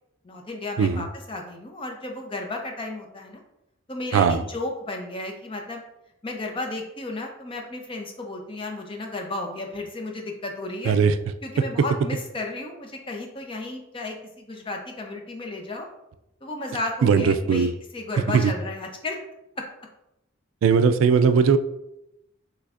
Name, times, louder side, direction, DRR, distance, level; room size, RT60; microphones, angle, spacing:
voice 1, 0.2-3.4 3.9-5.8 6.2-10.9 11.4-15.9 16.4-19.2 19.6-19.9, left 2 dB, 25° left, 2 dB, 0.6 m, -33 dB
voice 2, 4.1-4.4 10.9-11.1 17.0-17.7 18.3-18.5 20.6-21.6, right 6 dB, 80° right, 11 dB, 0.3 m, -19 dB
5.8 x 3.2 x 2.5 m, 0.85 s
head